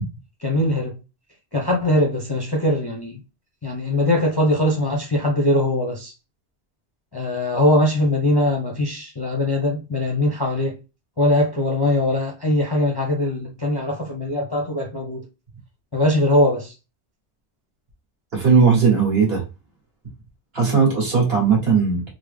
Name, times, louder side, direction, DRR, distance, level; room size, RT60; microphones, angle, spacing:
voice 1, 0.4-1.0 1.5-3.2 3.6-6.1 7.1-10.8 11.2-15.3 15.9-16.7, left 1 dB, 30° left, 0.5 m, -21 dB
voice 2, 18.3-19.4 20.5-22.0, right 5 dB, 60° right, 1.5 m, -17 dB
3.5 x 2.0 x 3.2 m
omnidirectional pair, 1.2 m